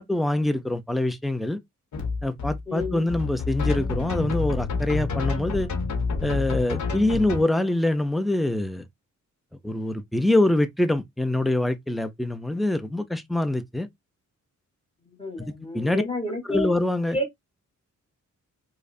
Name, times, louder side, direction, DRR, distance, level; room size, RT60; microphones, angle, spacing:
voice 1, 0.0-1.6 2.2-5.7 6.2-8.8 9.6-13.9 15.4-16.0 16.4-17.2, left 1 dB, ahead, 0.4 m, -25 dB
sound 1, 1.9-7.4, left 4 dB, 70° left, 1.0 m, -28 dB
voice 2, 2.7-3.1 15.1-16.7 17.1-17.3, left 1 dB, 20° left, 1.3 m, -30 dB
4.8 x 2.1 x 2.5 m
wide cardioid pair, 110°, 30 cm